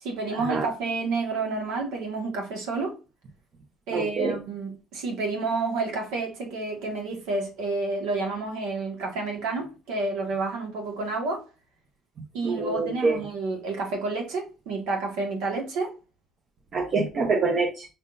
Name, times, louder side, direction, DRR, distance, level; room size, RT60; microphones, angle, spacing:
voice 1, 0.0-2.9 3.9-11.4 12.3-15.9, right 3 dB, 85° right, 1.5 m, -30 dB
voice 2, 3.9-4.4 12.4-13.2 16.7-17.9, right 3 dB, 50° right, 0.9 m, -25 dB
5.3 x 3.6 x 2.6 m
supercardioid pair, 80°, 0 cm